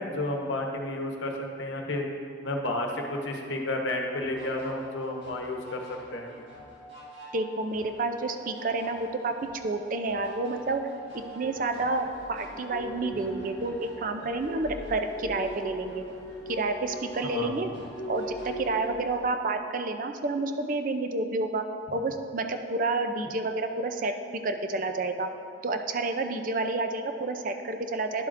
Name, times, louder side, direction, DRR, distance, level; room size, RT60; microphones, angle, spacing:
voice 1, 0.0-2.1 2.4-6.3 17.2-17.7, left 1 dB, 85° left, 2 dB, 0.9 m, -31 dB
sound 1, 4.2-18.9, equal, 65° right, 2.0 m, -48 dB
voice 2, 7.3-9.3 9.6-10.8 11.1-16.1 16.5-17.7 18.1-21.7 21.9-24.1 24.4-25.3 25.6-28.3, right 3 dB, 45° right, 7 dB, 0.4 m, -29 dB
sound 2, 11.4-19.3, equal, 15° left, 1.2 m, -41 dB
11.0 x 7.4 x 2.6 m, 2.4 s
head